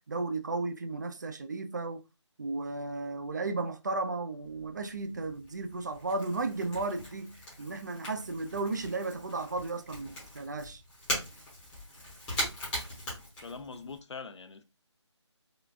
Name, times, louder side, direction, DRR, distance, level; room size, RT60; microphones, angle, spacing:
voice 1, 0.0-2.0 2.4-7.3 7.6-10.8, right 3 dB, 40° right, 0.4 m, -34 dB
Crackle / Crack, 4.4-14.0, equal, 5° left, 0.8 m, -40 dB
voice 2, 13.4-14.6, left 4 dB, 70° left, 0.5 m, -43 dB
3.7 x 2.2 x 2.3 m
figure-of-eight pair, 165°, 15 cm